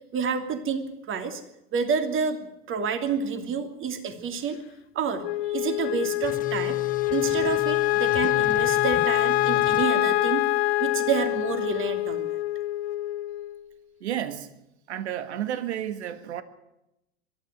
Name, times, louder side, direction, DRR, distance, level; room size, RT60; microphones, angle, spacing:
voice 1, 0.0-1.4 1.7-4.6 4.9-6.8 7.1-10.5 10.8-12.4, right 5 dB, 40° right, 2.8 m, -29 dB
Wind instrument woodwind instrument, 5.2-13.7, left 17 dB, 70° left, 0.9 m, -25 dB
sound 1, 6.2-9.9, left 8 dB, 25° left, 1.0 m, -38 dB
voice 2, 14.0-14.5 14.9-16.4, right 10 dB, 85° right, 1.6 m, -31 dB
22.5 x 13.0 x 9.5 m
hypercardioid pair, 100°, 33 cm